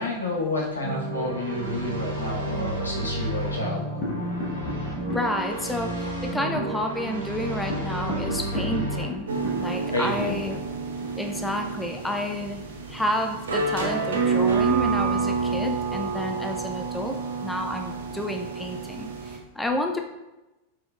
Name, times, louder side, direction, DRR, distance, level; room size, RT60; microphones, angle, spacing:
voice 1, 0.0-3.8 9.9-10.4, left 2 dB, 75° left, -3 dB, 1.1 m, -29 dB
sound 1, 0.8-9.1, right 2 dB, 80° right, 1.2 m, -31 dB
sound 2, 4.0-11.6, left 2 dB, 40° left, 1.3 m, -36 dB
voice 2, 5.1-9.3 9.6-10.6 11.1-20.0, left 1 dB, 5° left, 4 dB, 0.3 m, -30 dB
sound 3, 9.3-19.4, right 4 dB, 65° right, 0.6 m, -28 dB
4.4 x 4.3 x 2.4 m, 1.0 s
figure-of-eight pair, 90°, 0 cm